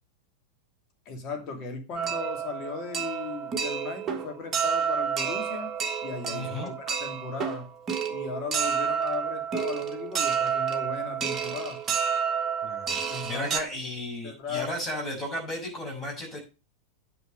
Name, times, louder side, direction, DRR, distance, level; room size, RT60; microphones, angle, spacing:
voice 1, 1.0-5.7 6.0-7.7 8.1-11.8 13.1-13.6 14.2-14.8, left 5 dB, 35° left, 4 dB, 2.7 m, -36 dB
sound 1, 1.9-13.6, right 7 dB, 25° right, 1.5 m, -30 dB
voice 2, 6.3-6.7 12.6-16.4, left 1 dB, 20° left, 0 dB, 6.5 m, -34 dB
9.5 x 6.3 x 6.5 m, 0.31 s
figure-of-eight pair, 90°, 0 cm